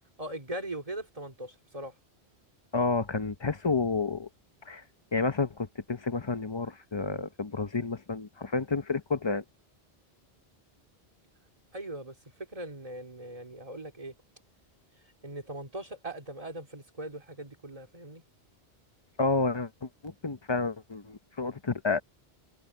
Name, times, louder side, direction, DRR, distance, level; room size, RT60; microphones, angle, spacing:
voice 1, 0.2-1.9 11.7-14.1 15.2-18.2, right 1 dB, 35° right, 2.5 m, -40 dB
voice 2, 2.7-4.3 4.6-4.8 5.1-9.4 19.2-22.0, left 4 dB, 30° left, 0.8 m, -30 dB
omnidirectional pair, 1.1 m